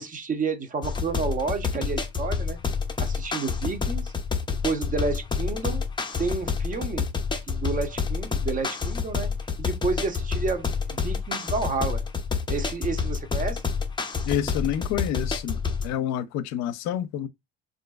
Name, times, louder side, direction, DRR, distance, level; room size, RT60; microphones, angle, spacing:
voice 1, 0.0-2.6 3.0-4.1 4.6-5.8 6.2-7.1 7.5-9.3 9.6-12.0 12.5-13.6, right 4 dB, 25° right, 0.8 m, -30 dB
sound 1, 0.8-16.0, left 5 dB, 15° left, 0.6 m, -28 dB
voice 2, 14.3-15.6 15.8-17.3, left 10 dB, 65° left, 0.6 m, -28 dB
3.7 x 2.6 x 2.3 m
supercardioid pair, 105°, 29 cm